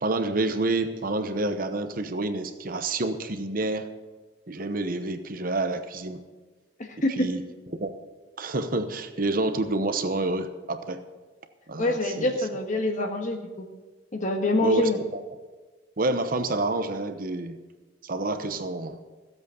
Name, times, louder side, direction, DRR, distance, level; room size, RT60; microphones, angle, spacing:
voice 1, 0.0-3.9 4.5-6.2 7.2-7.4 7.7-7.9 8.4-11.0 11.7-12.4 14.6-15.2 16.0-17.6 18.0-19.0, right 2 dB, 50° right, 9 dB, 0.9 m, -28 dB
voice 2, 6.8-7.3 11.8-13.6 14.1-15.0, left 2 dB, 45° left, 4 dB, 1.6 m, -26 dB
15.0 x 8.2 x 6.8 m, 1.3 s
head